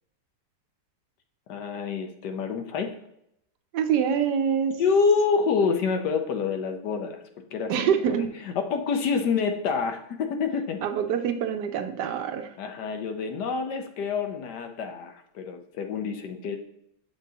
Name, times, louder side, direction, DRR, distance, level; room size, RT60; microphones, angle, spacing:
voice 1, 1.5-2.9 4.8-7.2 7.5-7.7 8.1-10.8 12.6-16.6, left 5 dB, 75° left, 6 dB, 1.4 m, -27 dB
voice 2, 3.7-4.8 7.7-8.3 10.8-12.5, right 8 dB, 75° right, 7 dB, 1.3 m, -25 dB
7.6 x 5.9 x 2.9 m, 0.77 s
omnidirectional pair, 1.9 m